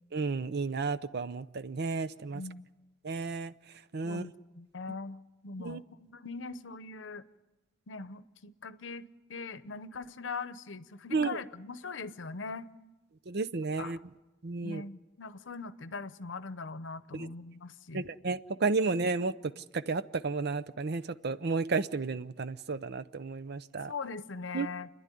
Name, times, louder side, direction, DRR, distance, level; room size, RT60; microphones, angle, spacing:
voice 1, 0.1-2.4 3.0-3.5 3.9-4.2 5.6-5.8 11.1-11.4 13.3-14.0 14.4-14.8 17.1-17.3 17.9-23.9 24.5-24.7, right 4 dB, 60° right, 15 dB, 0.7 m, -32 dB
voice 2, 2.3-2.7 4.0-7.2 7.9-12.7 13.8-14.0 14.6-18.1 23.9-24.9, left 4 dB, 80° left, 14 dB, 0.8 m, -41 dB
29.5 x 10.5 x 9.9 m, 1.1 s
head